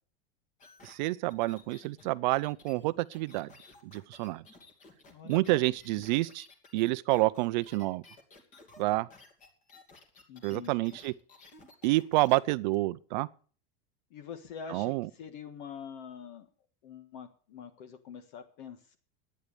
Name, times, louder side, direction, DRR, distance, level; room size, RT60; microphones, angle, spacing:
sound 1, 0.6-12.4 12.7-12.8, left 3 dB, 25° left, 2.5 m, -56 dB
voice 1, 0.8-3.5 3.8-4.4 5.2-6.5 6.7-8.0 8.8-9.1 10.4-11.1 11.8-13.3 14.7-15.1, right 20 dB, 50° right, 0.5 m, -28 dB
voice 2, 5.1-5.6 10.3-11.0 14.1-16.5 16.8-19.0, left 7 dB, 55° left, 1.6 m, -45 dB
11.5 x 9.6 x 6.8 m
supercardioid pair, 165°, 30 cm